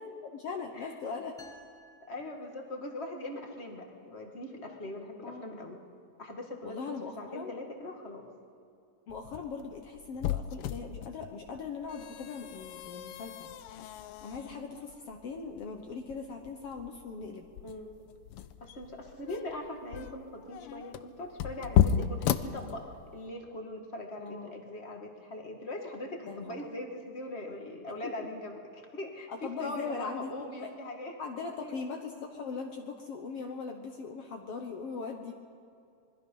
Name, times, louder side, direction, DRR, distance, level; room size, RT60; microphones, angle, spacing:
voice 1, 0.0-1.4 5.2-5.6 6.6-7.5 9.1-13.5 14.0-17.5 24.2-24.5 26.3-26.7 28.0-28.3 29.3-30.7 31.2-35.3, left 5 dB, 60° left, 3 dB, 1.9 m, -40 dB
sound 1, 1.4-3.1, left 1 dB, ahead, 0.9 m, -57 dB
voice 2, 2.1-5.8 6.2-8.3 17.6-17.9 18.6-31.1 31.6-31.8, left 1 dB, 25° left, 2 dB, 1.8 m, -41 dB
sound 2, 9.1-23.3, left 10 dB, 85° left, 1.2 m, -34 dB
26.5 x 21.0 x 5.6 m, 2.5 s
omnidirectional pair, 3.4 m